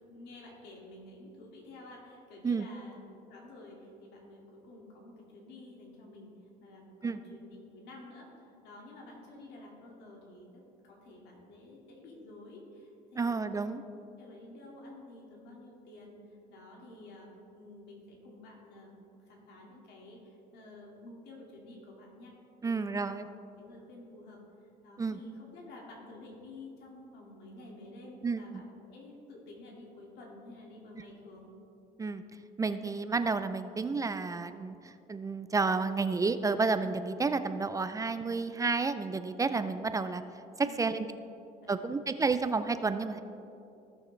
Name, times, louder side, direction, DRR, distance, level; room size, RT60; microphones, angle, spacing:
voice 1, 0.0-13.5 13.9-18.9 19.2-22.3 22.6-23.3 23.6-24.4 24.8-31.5 40.6-41.2 41.6-41.9, left 2 dB, 80° left, -2 dB, 2.2 m, -51 dB
voice 2, 13.2-13.8 22.6-23.3 25.0-25.2 28.2-28.4 32.0-32.2 32.6-40.2 40.6-41.1 41.7-43.2, right 4 dB, 20° right, 10 dB, 0.4 m, -31 dB
16.5 x 6.3 x 3.2 m, 2.7 s
cardioid pair, 110°, 17 cm